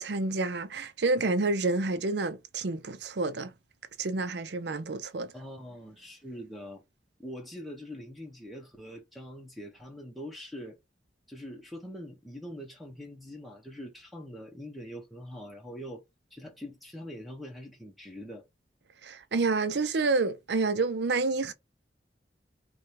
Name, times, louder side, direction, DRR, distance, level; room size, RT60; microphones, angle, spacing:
voice 1, 0.0-3.5 4.0-5.3 19.0-21.5, right 3 dB, 70° right, 0.6 m, -29 dB
voice 2, 5.3-6.8 7.2-10.8 11.3-16.0 16.3-18.5, equal, ahead, 0.8 m, -43 dB
4.8 x 2.3 x 2.7 m
head